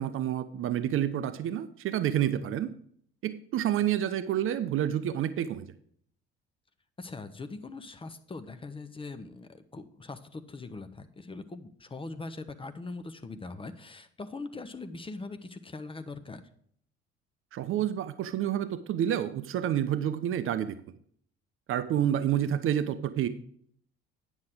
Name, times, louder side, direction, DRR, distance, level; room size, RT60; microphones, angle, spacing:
voice 1, 0.0-2.7 3.2-5.7 17.5-20.8 21.7-23.3, right 10 dB, 40° right, 12 dB, 0.6 m, -29 dB
voice 2, 7.0-16.4, left 3 dB, 15° left, 9 dB, 0.7 m, -41 dB
9.5 x 6.2 x 5.0 m, 0.63 s
figure-of-eight pair, 50°, 32 cm